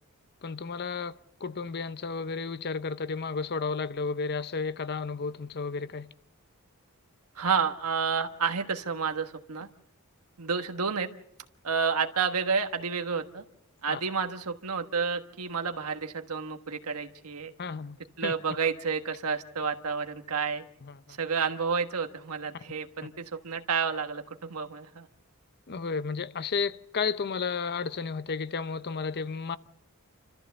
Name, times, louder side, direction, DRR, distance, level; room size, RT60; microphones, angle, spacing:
voice 1, 0.4-6.1 13.9-14.0 17.6-18.3 20.8-21.2 25.7-29.6, left 5 dB, 50° left, 0.7 m, -33 dB
voice 2, 7.3-9.7 10.4-11.1 11.6-13.4 13.8-17.5 18.2-20.6 21.1-25.1, right 5 dB, 85° right, 1.3 m, -30 dB
28.0 x 14.0 x 6.9 m
head